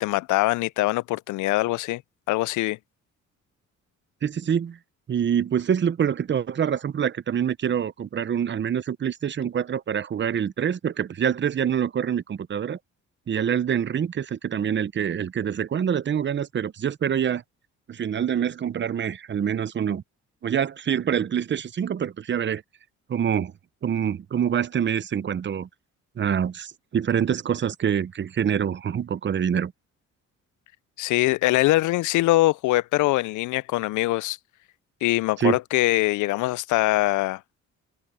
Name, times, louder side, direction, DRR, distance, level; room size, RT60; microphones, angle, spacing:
voice 1, 0.0-2.0 2.3-2.8 31.0-34.4 35.0-37.4, left 18 dB, 80° left, 0.5 m, -23 dB
voice 2, 4.2-4.8 5.1-12.8 13.3-17.4 17.9-20.0 20.4-22.6 23.1-23.5 23.8-25.7 26.2-29.7 35.4-35.6, right 8 dB, 40° right, 0.8 m, -25 dB
cardioid pair, 90°, 30 cm